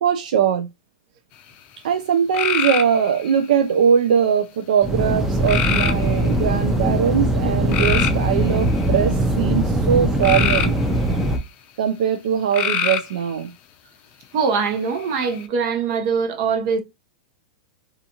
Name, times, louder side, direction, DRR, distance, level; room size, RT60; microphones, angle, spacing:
voice 1, 0.0-0.7 1.8-10.8 11.8-13.5, right 8 dB, 80° right, 0.4 m, -21 dB
sound 1, 2.3-3.3 5.5-6.3 7.7-9.0 10.2-11.4 12.5-13.2 14.9-15.4, left 8 dB, 40° left, 0.4 m, -24 dB
sound 2, 4.8-11.4, right 1 dB, 5° right, 0.6 m, -21 dB
voice 2, 14.3-16.8, right 5 dB, 55° right, 0.8 m, -22 dB
2.5 x 2.4 x 2.8 m
hypercardioid pair, 125°, 4 cm